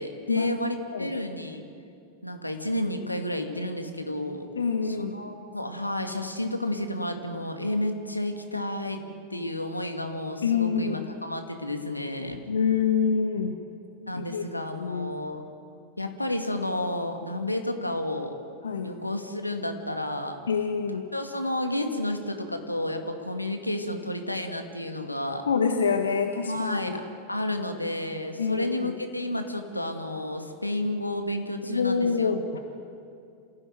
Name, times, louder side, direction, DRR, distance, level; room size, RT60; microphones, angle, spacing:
voice 1, 0.0-1.7 2.2-4.5 4.8-9.0 9.3-12.4 14.1-15.4 16.0-18.3 18.8-20.4 21.1-25.5 26.5-27.0 27.3-32.3, left 1 dB, 85° left, 5 dB, 2.2 m, -31 dB
voice 2, 4.6-5.2 10.4-11.1 12.5-13.6 14.1-14.4 14.8-15.1 18.6-18.9 20.5-21.1 25.4-27.0 28.4-28.9 31.7-32.7, left 6 dB, 70° left, 5 dB, 1.4 m, -26 dB
27.5 x 16.5 x 9.3 m, 2.5 s
figure-of-eight pair, 90°, 0 cm